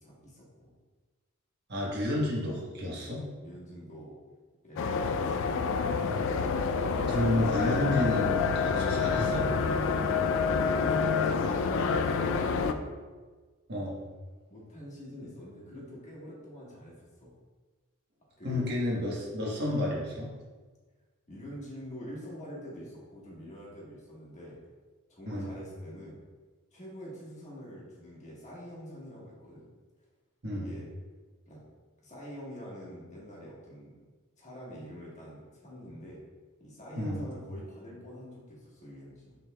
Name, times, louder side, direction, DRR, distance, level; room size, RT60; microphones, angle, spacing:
voice 1, 0.0-0.4 3.0-4.2 4.6-5.4 10.7-12.9 14.5-17.3 18.4-18.7 21.3-24.6 25.1-26.2 26.7-29.7 30.5-30.9 31.5-31.6 32.0-33.9 34.4-36.2 36.6-39.4, equal, 35° left, -5 dB, 1.4 m, -45 dB
voice 2, 1.7-3.2 7.1-9.5 13.7-14.0 18.4-20.3 25.2-25.5 30.4-30.7 36.9-37.3, left 1 dB, 50° right, -4 dB, 1.2 m, -30 dB
sound 1, 4.8-12.7, left 5 dB, 60° left, 0.3 m, -27 dB
6.4 x 3.5 x 2.2 m, 1.4 s
head